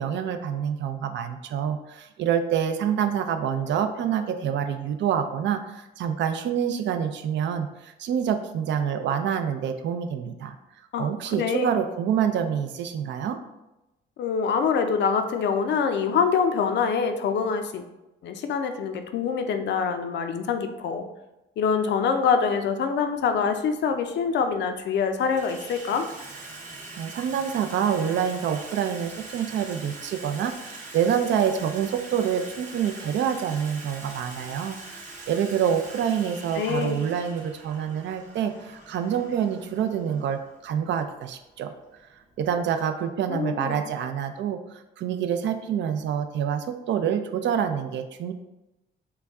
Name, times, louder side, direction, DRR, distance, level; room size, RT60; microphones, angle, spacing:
voice 1, 0.0-10.5 11.0-13.4 27.0-41.7 42.4-48.3, right 8 dB, 65° right, 8 dB, 0.4 m, -27 dB
voice 2, 10.9-11.7 14.2-17.8 18.2-21.0 21.6-26.1 36.6-37.0 43.3-43.8, left 6 dB, 65° left, 7 dB, 0.5 m, -25 dB
Water tap faucet / Sink (filling or washing), 23.2-23.3 24.3-24.7 25.0-42.6, right 3 dB, 40° right, 0.8 m, -43 dB
3.9 x 2.3 x 3.4 m, 0.95 s
cardioid pair, 90°, 20 cm